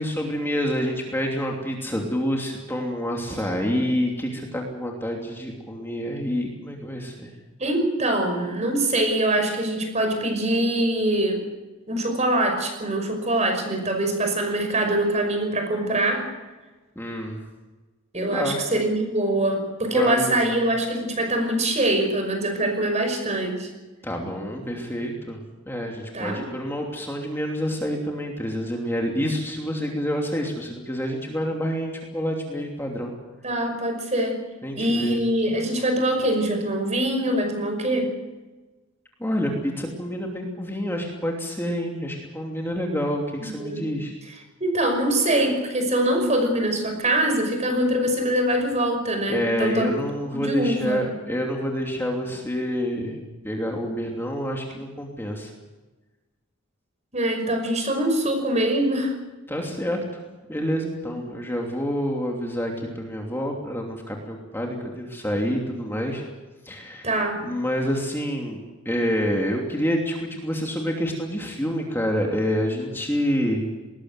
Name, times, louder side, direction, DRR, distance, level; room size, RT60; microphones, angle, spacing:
voice 1, 0.0-7.3 17.0-17.4 18.3-18.6 19.8-20.4 24.0-25.4 25.7-33.1 34.6-35.2 39.2-44.1 49.3-55.5 59.5-60.0 60.5-66.2 66.6-67.1 67.4-73.6, equal, 10° left, 0 dB, 2.9 m, -27 dB
voice 2, 7.6-11.5 11.9-16.3 18.1-23.7 26.1-26.4 33.4-34.4 34.8-38.1 43.4-43.9 44.6-50.0 50.3-51.0 57.1-59.1 61.1-61.2 67.0-67.4, right 1 dB, 35° right, 5 dB, 5.7 m, -23 dB
20.5 x 19.5 x 8.1 m, 1.2 s
head